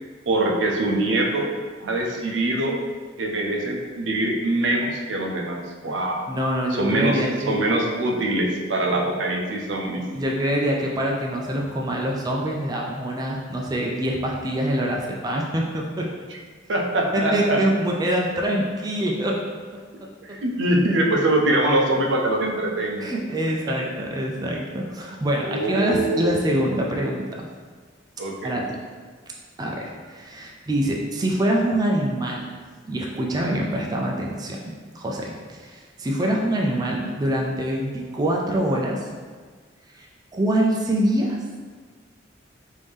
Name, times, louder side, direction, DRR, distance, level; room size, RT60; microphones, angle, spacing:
voice 1, 0.3-1.5 1.8-2.8 3.2-6.3 6.7-7.2 7.5-10.0 16.7-17.6 20.2-23.1 23.6-23.7 25.4-26.4 28.2-28.6, right 1 dB, 80° right, 0 dB, 0.5 m, -23 dB
voice 2, 6.3-7.6 10.1-16.1 17.1-19.4 20.0-20.4 23.0-27.5 28.4-28.8 29.6-32.5 32.8-34.6 34.9-39.1 40.0-40.1 40.3-41.4, right 1 dB, 20° right, -1 dB, 0.3 m, -25 dB
3.2 x 2.6 x 3.4 m, 1.5 s
head